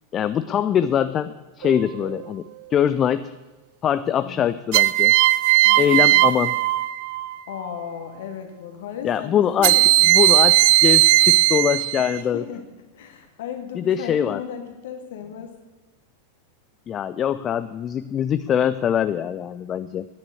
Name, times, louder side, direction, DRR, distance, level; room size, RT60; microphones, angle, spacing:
voice 1, 0.1-2.5 2.7-3.3 3.8-5.1 5.8-6.5 9.0-12.4 13.8-14.4 16.9-20.1, left 9 dB, 25° left, 13 dB, 0.4 m, -23 dB
sound 1, 1.6-2.2 4.7-7.4 9.6-12.2, right 17 dB, 50° right, 0.4 m, -17 dB
voice 2, 5.6-6.3 7.5-10.4 12.0-12.7 12.9-15.5, left 8 dB, 55° left, 5 dB, 2.0 m, -36 dB
9.9 x 9.8 x 8.0 m, 1.2 s
figure-of-eight pair, 90°, 0 cm